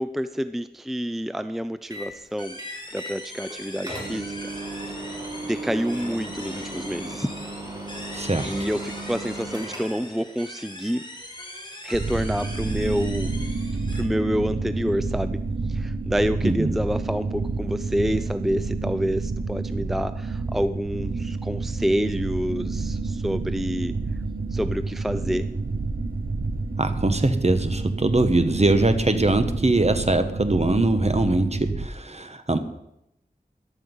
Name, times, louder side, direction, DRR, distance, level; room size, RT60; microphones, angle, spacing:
voice 1, 0.0-2.6 2.9-4.5 5.4-7.3 8.4-11.1 11.8-13.3 13.9-15.4 15.7-24.0 24.5-25.5 28.7-28.9, equal, ahead, 12 dB, 0.5 m, -28 dB
sound 1, 1.9-2.1 2.6-3.2 3.5-3.6 3.8-10.1, right 2 dB, 25° right, 3.5 m, -36 dB
sound 2, 2.4-14.0, left 1 dB, 25° left, 2.8 m, -41 dB
voice 2, 8.1-8.7 16.4-16.8 26.8-32.6, right 2 dB, 40° right, 9 dB, 1.3 m, -22 dB
sound 3, 11.9-31.9, right 3 dB, 65° right, 0.9 m, -29 dB
14.5 x 11.5 x 5.5 m, 0.82 s
wide cardioid pair, 60°, 17 cm